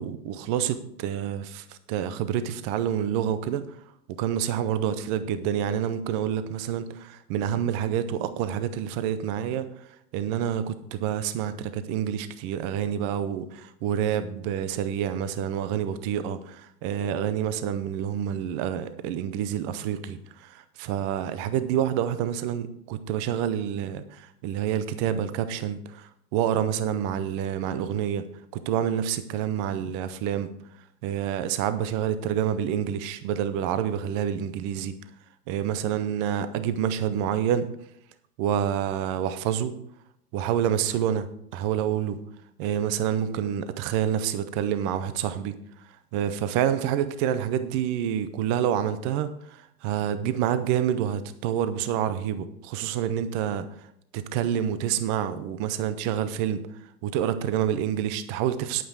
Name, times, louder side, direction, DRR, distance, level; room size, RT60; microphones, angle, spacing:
voice 1, 0.0-3.6 4.2-9.7 10.1-28.2 28.7-30.5 31.0-34.9 35.5-37.7 38.4-39.7 40.3-41.3 41.5-42.2 42.6-45.5 46.1-53.7 54.1-56.6 57.0-58.8, right 9 dB, 20° right, 12 dB, 0.4 m, -28 dB
9.7 x 9.1 x 4.6 m, 0.71 s
hypercardioid pair, 130°, 49 cm